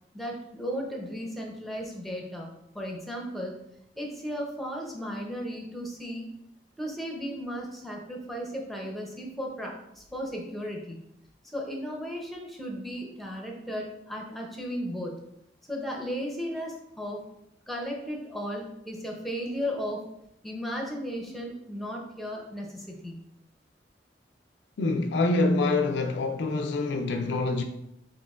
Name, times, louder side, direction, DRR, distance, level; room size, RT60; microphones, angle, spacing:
voice 1, 0.1-2.5 2.7-3.6 4.0-6.3 6.8-11.0 11.5-15.1 15.7-17.2 17.7-20.0 20.4-23.2, equal, ahead, 0.7 m, -35 dB
voice 2, 24.8-27.6, left 2 dB, 75° left, 0.4 m, -26 dB
4.4 x 3.6 x 2.4 m
head